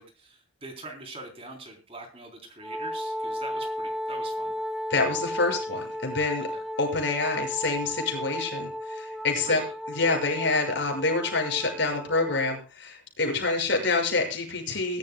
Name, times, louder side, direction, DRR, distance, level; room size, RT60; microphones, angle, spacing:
voice 1, 0.0-4.5 6.5-6.6 9.4-9.7, right 2 dB, 30° right, 3 dB, 3.9 m, -43 dB
Wind instrument woodwind instrument, 2.6-12.6, equal, ahead, 1.3 m, -34 dB
voice 2, 4.9-6.5 6.8-9.6 10.0-15.0, left 3 dB, 60° left, 2 dB, 6.8 m, -27 dB
22.0 x 12.5 x 2.3 m, 0.34 s
head